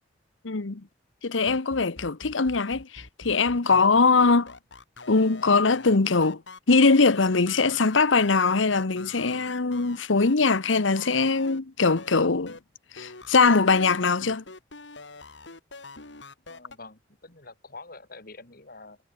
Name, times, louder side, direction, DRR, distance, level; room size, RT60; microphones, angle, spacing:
voice 1, 0.4-0.8 1.2-4.5 5.1-6.4 6.7-12.5 12.9-14.4, left 4 dB, 90° left, 1.1 m, -22 dB
sound 1, 1.5-11.6 12.0-12.6 13.0-16.8, left 3 dB, 70° left, 3.0 m, -45 dB
voice 2, 16.5-19.0, left 3 dB, 50° left, 3.4 m, -46 dB
head